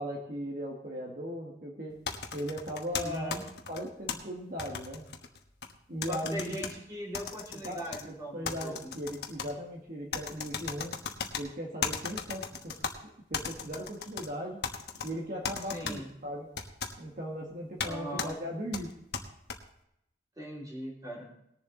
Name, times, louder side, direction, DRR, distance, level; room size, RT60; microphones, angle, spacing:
voice 1, 0.0-1.9 2.3-5.0 5.9-6.6 7.5-10.9 11.4-14.6 15.0-16.5 17.0-18.9, equal, 50° right, -2 dB, 1.7 m, -38 dB
sound 1, 2.1-4.2 4.6-5.7 6.0-6.7 7.1-8.0 8.4-9.5 10.1-11.4 11.8-12.9 13.3-14.3 14.6-15.1 15.4-16.0 16.6-16.9 17.8-17.9 18.2-18.3 18.7-19.6, left 6 dB, 70° left, 1.2 m, -36 dB
voice 2, 2.9-3.5 6.1-8.9 15.7-16.1 17.8-18.4 20.4-21.3, equal, 20° right, -3 dB, 3.3 m, -40 dB
19.5 x 7.1 x 3.9 m, 0.79 s
head